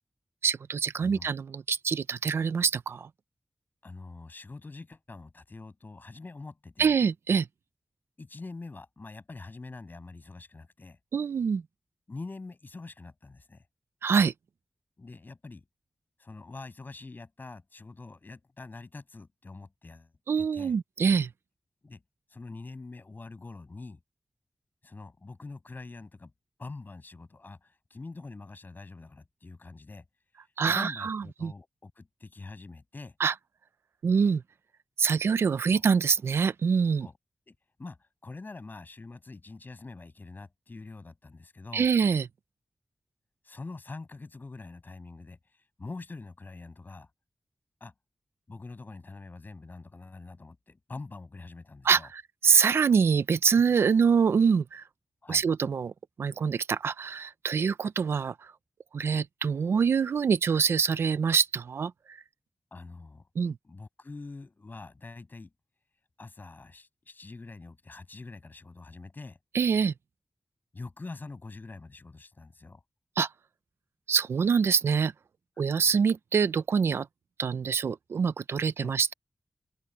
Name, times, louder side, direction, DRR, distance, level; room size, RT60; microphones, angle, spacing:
voice 1, 0.4-3.1 6.8-7.5 11.1-11.6 14.0-14.3 20.3-21.3 30.6-31.5 33.2-33.3 34.0-34.4 35.0-37.1 41.7-42.3 51.8-54.8 55.3-55.9 56.2-58.5 58.9-62.2 63.4-63.6 69.5-69.9 73.2-73.3 74.1-75.1 75.6-77.1 77.4-79.1, right 6 dB, 85° right, 0.6 m, -25 dB
voice 2, 3.8-7.0 8.2-11.0 12.1-13.6 15.0-15.6 16.2-20.1 20.4-20.7 21.8-22.0 22.3-24.0 24.8-26.3 26.6-30.0 30.6-33.2 35.7-35.8 37.0-37.1 37.5-41.9 43.4-47.1 47.8-47.9 48.5-52.1 55.2-55.4 62.7-63.3 63.6-65.5 66.2-69.4 70.7-72.8 75.6-75.7 78.8-79.0, left 3 dB, 50° left, 7.9 m, -45 dB
open air
cardioid pair, 50°, 4 cm